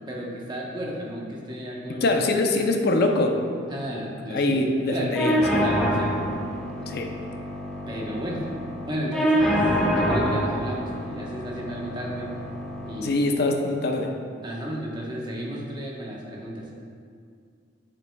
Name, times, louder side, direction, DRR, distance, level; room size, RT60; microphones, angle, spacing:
voice 1, 0.1-2.1 3.7-6.1 7.9-8.4 8.9-12.3 12.8-13.3 14.4-16.7, equal, 20° right, -3 dB, 1.0 m, -33 dB
voice 2, 2.0-3.4 4.3-5.7 6.9-7.1 13.0-14.1, left 2 dB, 55° left, 3 dB, 0.6 m, -23 dB
sound 1, 5.1-13.1, equal, 5° left, 0.8 m, -26 dB
8.5 x 7.7 x 2.3 m, 2.3 s
head